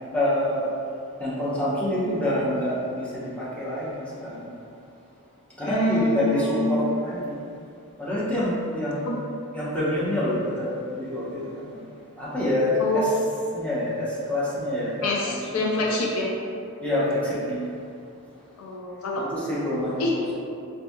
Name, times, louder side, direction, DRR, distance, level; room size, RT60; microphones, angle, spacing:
voice 1, 0.1-0.6 1.2-4.4 5.6-7.4 8.0-9.1 9.5-11.8 12.2-12.7 13.5-15.9 16.8-17.6 19.1-20.3, left 1 dB, 5° left, -10 dB, 0.8 m, -27 dB
voice 2, 5.6-6.8 9.0-9.2 12.8-13.0 15.0-16.3 18.6-19.3 20.0-20.1, left 2 dB, 75° left, -2 dB, 0.5 m, -26 dB
4.1 x 2.6 x 2.2 m, 2.4 s
head